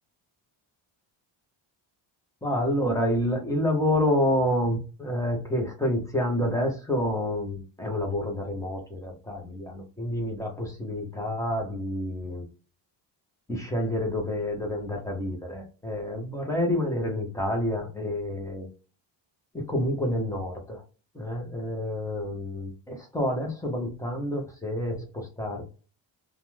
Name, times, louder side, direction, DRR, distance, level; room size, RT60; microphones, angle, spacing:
voice 1, 2.4-12.5 13.5-18.7 19.5-20.8 21.1-25.6, left 1 dB, 5° left, 1 dB, 0.7 m, -28 dB
2.4 x 2.2 x 3.0 m, 0.34 s
cardioid pair, 155°, 46 cm